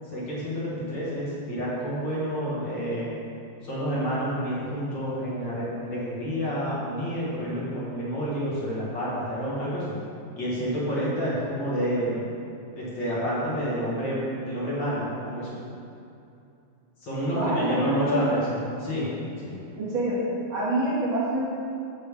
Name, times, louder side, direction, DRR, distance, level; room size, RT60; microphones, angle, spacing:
voice 1, 0.1-3.1 3.6-10.0 10.4-12.3 12.8-15.6 17.0-19.1 19.4-19.6, equal, 60° left, -7 dB, 2.3 m, -29 dB
voice 2, 17.4-18.2 19.8-20.2 20.5-21.4, right 1 dB, 70° right, -10 dB, 2.7 m, -26 dB
7.3 x 6.6 x 3.5 m, 2.6 s
omnidirectional pair, 2.3 m